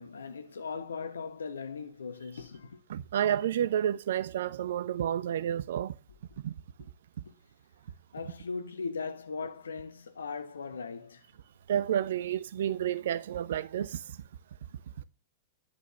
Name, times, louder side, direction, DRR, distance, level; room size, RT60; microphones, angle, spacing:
voice 1, 0.0-2.8 7.2-7.3 8.1-11.2, left 5 dB, 75° left, 1.4 m, -39 dB
voice 2, 2.9-6.0 6.4-6.5 11.7-14.2 15.0-15.1, right 10 dB, 60° right, 0.8 m, -30 dB
11.0 x 6.4 x 7.5 m
figure-of-eight pair, 100°, 0 cm